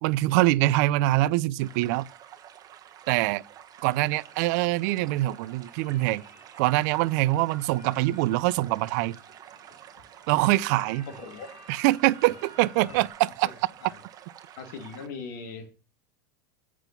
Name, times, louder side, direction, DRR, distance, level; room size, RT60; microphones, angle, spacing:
voice 1, 0.0-2.1 3.1-3.4 3.8-6.2 6.6-9.2 10.3-11.1 11.7-13.5, right 18 dB, 60° right, 0.5 m, -24 dB
sound 1, 1.6-15.1, right 10 dB, 35° right, 1.4 m, -49 dB
sound 2, 3.6-13.1, equal, 45° left, 4.4 m, -54 dB
voice 2, 11.1-11.5 12.8-13.0 13.8-13.9 14.6-15.7, left 5 dB, 65° left, 2.5 m, -39 dB
8.1 x 6.0 x 6.7 m
hypercardioid pair, 110°, 11 cm